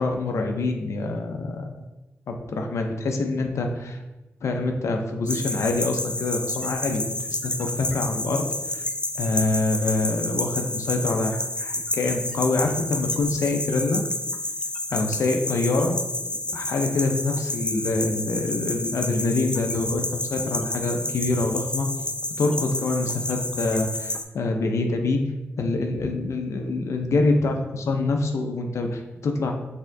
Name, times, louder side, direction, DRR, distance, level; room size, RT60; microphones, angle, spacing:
voice 1, 0.0-1.8 2.3-4.0 4.4-8.4 8.7-8.9 9.2-14.0 14.9-15.9 16.5-21.9 22.4-25.2 25.6-29.5, left 3 dB, 75° left, 4 dB, 0.5 m, -25 dB
sound 1, 5.3-24.2, left 1 dB, 20° left, 0.5 m, -30 dB
4.3 x 3.4 x 2.6 m, 1.0 s
cardioid pair, 50°, 5 cm